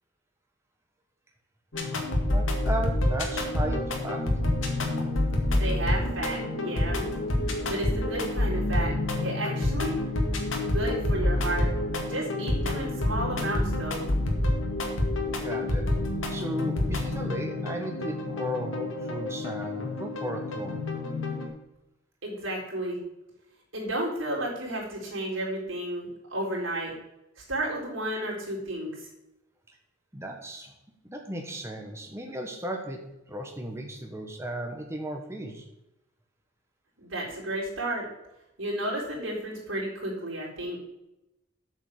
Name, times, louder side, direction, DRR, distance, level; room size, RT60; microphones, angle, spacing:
sound 1, 1.7-21.5, left 1 dB, 80° left, 2.1 m, -28 dB
voice 1, 1.8-4.2 15.3-15.9 16.3-20.8 30.1-30.7 31.0-33.0 33.3-35.6, right 1 dB, 15° right, 2 dB, 1.2 m, -35 dB
voice 2, 5.6-7.1 7.7-8.9 9.2-10.0 10.7-11.7 12.0-14.1 22.2-23.0 23.7-26.9 27.5-29.0 37.0-38.1 38.6-40.8, right 1 dB, 90° right, -3 dB, 4.1 m, -32 dB
8.4 x 7.3 x 6.6 m, 0.90 s
head